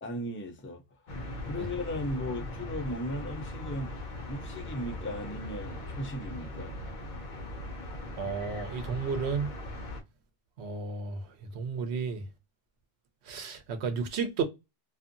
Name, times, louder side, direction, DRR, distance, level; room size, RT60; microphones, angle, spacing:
voice 1, 0.0-1.1 1.5-3.9 4.3-6.8, left 1 dB, 20° left, 0.4 m, -36 dB
sound 1, 1.1-10.0, left 1 dB, 55° left, 0.7 m, -39 dB
voice 2, 8.2-9.5 10.6-12.3 13.2-14.4, right 5 dB, 80° right, 0.9 m, -33 dB
2.6 x 2.4 x 2.5 m
omnidirectional pair, 1.1 m